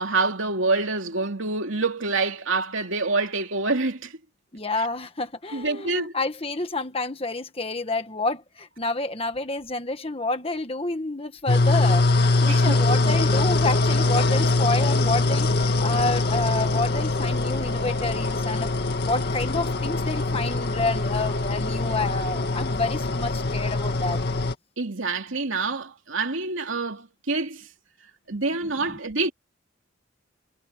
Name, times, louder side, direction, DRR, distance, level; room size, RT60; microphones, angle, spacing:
voice 1, 0.0-4.2 4.8-4.9 5.5-6.1 12.5-12.8 24.8-27.7 28.3-29.3, right 3 dB, 70° right, 2.8 m, -26 dB
voice 2, 4.5-12.0 12.4-18.7 19.0-24.2 28.9-29.0, left 2 dB, 25° left, 1.4 m, -29 dB
sound 1, 11.5-24.5, left 2 dB, 50° left, 2.0 m, -23 dB
head